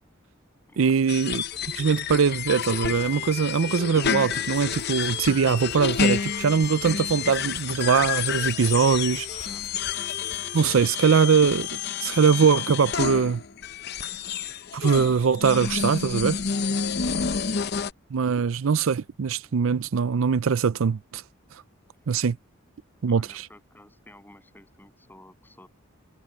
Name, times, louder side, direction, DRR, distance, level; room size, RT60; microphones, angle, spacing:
voice 1, 0.8-1.4 1.8-9.5 10.5-11.7 12.0-13.4 14.7-16.4 18.1-21.2 22.1-22.4 23.0-23.5, right 6 dB, 70° right, 0.5 m, -22 dB
sound 1, 1.1-17.9, left 7 dB, 50° left, 0.7 m, -29 dB
sound 2, 1.5-10.9, left 2 dB, 35° left, 3.1 m, -45 dB
voice 2, 9.3-9.7 16.9-17.2 23.1-25.7, left 1 dB, 10° left, 7.6 m, -52 dB
head